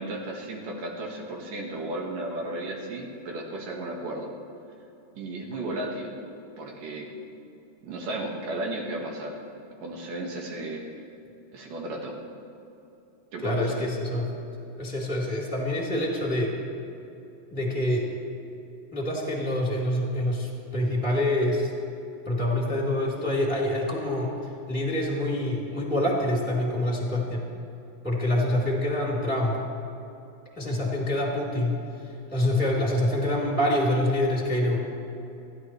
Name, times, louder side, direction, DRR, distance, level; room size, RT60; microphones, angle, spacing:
voice 1, 0.0-4.3 5.1-6.1 6.6-7.1 7.8-9.3 9.8-10.8 11.5-12.1 13.3-13.8, right 2 dB, 60° right, -1 dB, 2.9 m, -34 dB
voice 2, 13.4-14.3 14.8-16.6 17.5-18.1 18.9-21.7 22.2-24.3 24.7-27.4 28.0-29.6 30.5-31.7 32.3-34.8, left 1 dB, 5° left, -5 dB, 2.5 m, -26 dB
28.0 x 12.5 x 3.2 m, 2.9 s
omnidirectional pair, 5.0 m